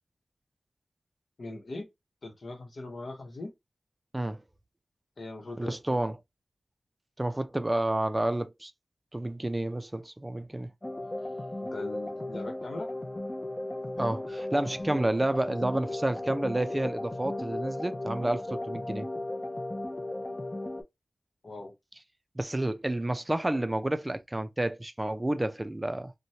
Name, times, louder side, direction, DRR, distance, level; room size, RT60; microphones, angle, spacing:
voice 1, 1.4-1.9 2.2-3.5 5.2-6.0 11.6-12.9 21.4-21.7, left 2 dB, 75° left, 0.9 m, -40 dB
voice 2, 5.6-6.1 7.2-8.7 9.1-10.7 13.9-19.1 22.4-26.1, right 1 dB, 25° right, 0.4 m, -30 dB
sound 1, 10.8-20.8, left 1 dB, 30° left, 0.5 m, -36 dB
3.0 x 2.2 x 2.7 m
cardioid pair, 50°, 0 cm